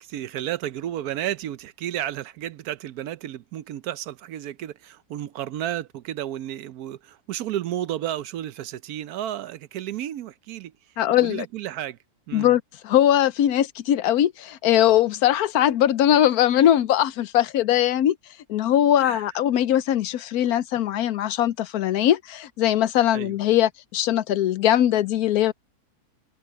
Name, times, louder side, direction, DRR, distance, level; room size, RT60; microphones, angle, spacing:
voice 1, 0.0-10.7 11.2-12.0 12.3-12.5 19.0-19.2 23.1-23.4, right 12 dB, 75° right, 1.1 m, -32 dB
voice 2, 11.0-11.5 12.3-18.1 18.5-25.5, left 11 dB, 75° left, 1.1 m, -21 dB
omnidirectional pair, 1.7 m